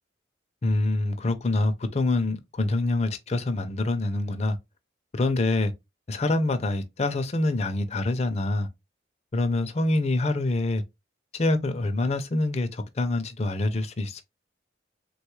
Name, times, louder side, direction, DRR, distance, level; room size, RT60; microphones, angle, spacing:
voice 1, 0.6-4.6 5.1-5.7 6.1-8.7 9.3-10.8 11.3-14.2, left 2 dB, 35° left, 0.4 m, -25 dB
3.5 x 2.3 x 3.0 m
head